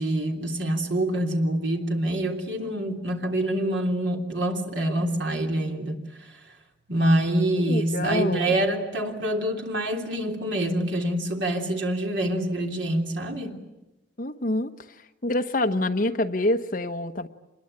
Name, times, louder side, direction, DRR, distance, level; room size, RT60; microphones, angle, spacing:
voice 1, 0.0-6.0 6.9-13.6, right 1 dB, 70° right, 2 dB, 3.4 m, -26 dB
voice 2, 7.6-8.6 14.2-14.7 15.2-17.3, left 1 dB, 45° left, 6 dB, 1.2 m, -26 dB
26.5 x 21.5 x 8.9 m, 1.0 s
head